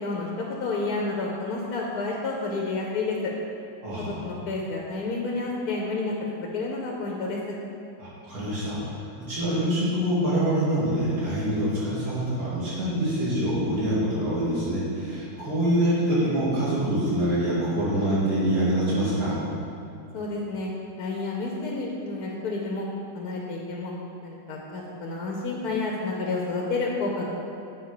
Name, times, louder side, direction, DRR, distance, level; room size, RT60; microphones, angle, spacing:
voice 1, 0.0-3.3 4.0-7.6 20.1-20.7 21.0-22.9 23.1-23.9 24.2-27.3, left 3 dB, 60° left, -2 dB, 1.2 m, -30 dB
voice 2, 3.8-4.1 8.0-8.8 9.3-19.4, right 1 dB, 50° right, -9 dB, 2.6 m, -25 dB
7.7 x 5.0 x 4.9 m, 2.6 s
omnidirectional pair, 2.0 m